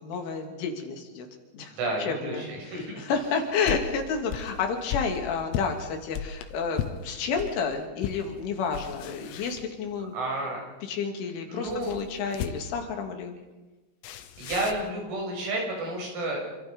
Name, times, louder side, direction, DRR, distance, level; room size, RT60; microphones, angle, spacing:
voice 1, 0.0-1.3 1.5-10.1 10.8-13.4, left 5 dB, 70° left, 3 dB, 4.9 m, -30 dB
voice 2, 1.7-3.0 10.1-10.6 11.5-12.0 14.4-16.5, right 2 dB, 90° right, -1 dB, 10.0 m, -31 dB
sound 1, 3.1-7.6 8.0-8.3 8.6-10.1 11.7-12.9 14.0-14.9, left 9 dB, 85° left, 4.0 m, -36 dB
27.5 x 25.5 x 5.4 m, 1.2 s
omnidirectional pair, 5.9 m